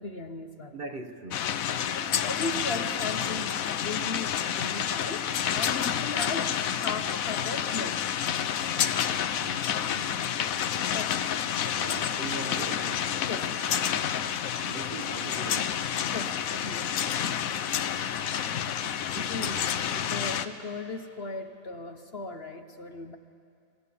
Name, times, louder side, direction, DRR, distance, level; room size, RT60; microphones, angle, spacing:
voice 1, 0.0-0.8 1.9-8.0 10.9-11.3 13.2-13.6 16.1-16.9 19.1-19.6 20.0-23.2, left 3 dB, 45° left, 7 dB, 1.0 m, -37 dB
voice 2, 0.7-1.5 5.5-5.8 8.8-10.1 11.8-13.1 14.3-15.8 17.2-17.3 18.6-20.1, right 3 dB, 40° right, 7 dB, 1.0 m, -42 dB
sound 1, 1.3-20.5, left 9 dB, 70° left, 1.1 m, -29 dB
24.0 x 20.0 x 8.5 m, 2.4 s
omnidirectional pair, 1.6 m